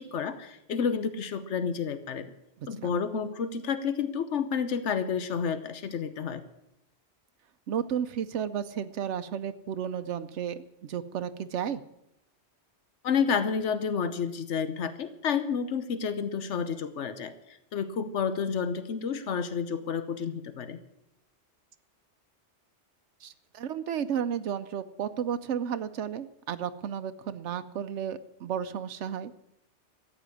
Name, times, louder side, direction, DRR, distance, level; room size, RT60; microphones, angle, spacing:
voice 1, 0.0-2.3 2.7-6.4 13.0-20.8, left 6 dB, 90° left, 11 dB, 1.2 m, -30 dB
voice 2, 2.6-2.9 7.7-11.8 23.2-29.3, right 8 dB, 85° right, 9 dB, 1.0 m, -33 dB
14.0 x 8.6 x 9.7 m, 0.81 s
omnidirectional pair, 1.2 m